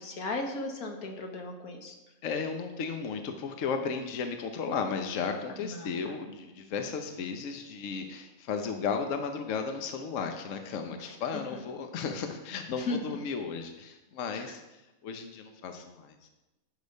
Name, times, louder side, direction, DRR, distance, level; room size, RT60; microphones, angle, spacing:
voice 1, 0.0-1.9 5.6-5.9 11.0-11.6 12.8-13.0 14.3-14.5, left 2 dB, 85° left, 3 dB, 1.7 m, -36 dB
voice 2, 2.2-14.6 15.0-16.3, left 5 dB, 65° left, 5 dB, 1.1 m, -34 dB
10.5 x 5.2 x 5.3 m, 1.0 s
omnidirectional pair, 1.5 m